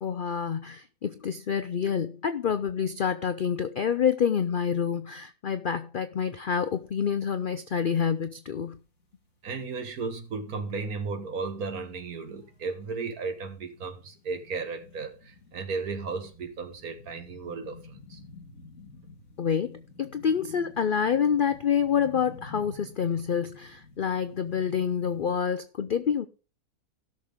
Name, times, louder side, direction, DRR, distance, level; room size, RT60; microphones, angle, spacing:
voice 1, 0.0-8.8 19.4-26.3, left 7 dB, 75° left, 0.4 m, -27 dB
sound 1, 6.8-6.9 7.1-25.4, left 3 dB, 50° left, 2.3 m, -51 dB
voice 2, 9.4-18.2, right 4 dB, 65° right, 1.9 m, -35 dB
16.5 x 6.4 x 3.6 m
omnidirectional pair, 1.7 m